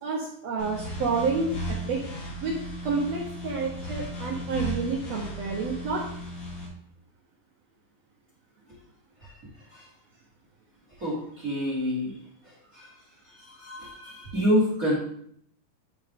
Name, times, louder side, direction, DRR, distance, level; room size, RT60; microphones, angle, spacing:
voice 1, 0.0-1.6 1.9-2.0 2.4-2.6 2.8-6.0, right 4 dB, 80° right, -2 dB, 1.5 m, -29 dB
sound 1, 0.6-6.7, equal, 85° left, 3.6 m, -36 dB
voice 2, 11.0-12.1 12.7-12.9 13.4-14.9, equal, 35° right, -6 dB, 1.5 m, -27 dB
9.5 x 3.7 x 3.6 m, 0.67 s
omnidirectional pair, 4.1 m